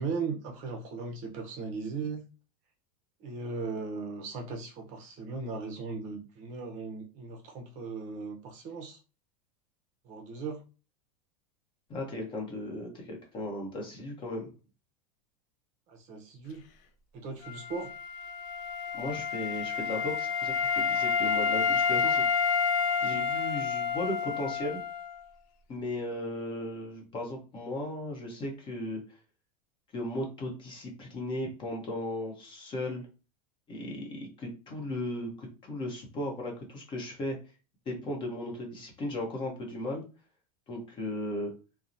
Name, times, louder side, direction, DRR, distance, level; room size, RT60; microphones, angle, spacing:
voice 1, 0.0-2.2 3.2-9.0 10.0-10.6 15.9-16.6 17.1-17.9, right 4 dB, 40° right, 3 dB, 0.6 m, -37 dB
voice 2, 11.9-14.5 18.9-22.2 23.0-24.8 25.7-29.0 29.9-33.0 33.7-37.4 37.9-40.0 40.7-41.5, left 1 dB, 25° left, 1 dB, 0.7 m, -36 dB
Wind instrument woodwind instrument, 17.4-25.2, left 6 dB, 40° left, 0.4 m, -29 dB
2.8 x 2.0 x 2.5 m, 0.33 s
supercardioid pair, 145°, 19 cm